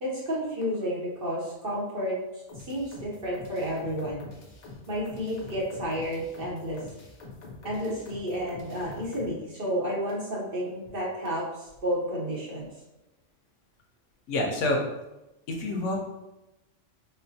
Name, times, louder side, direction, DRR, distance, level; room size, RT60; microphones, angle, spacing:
voice 1, 0.0-2.2 2.6-4.2 4.9-6.8 7.6-12.7, equal, 50° right, -4 dB, 1.0 m, -31 dB
sound 1, 2.5-9.3, left 3 dB, 45° left, 0.6 m, -45 dB
voice 2, 14.3-14.8 15.5-16.1, left 2 dB, 75° left, 1 dB, 1.0 m, -27 dB
4.2 x 2.1 x 2.7 m, 0.97 s
omnidirectional pair, 1.3 m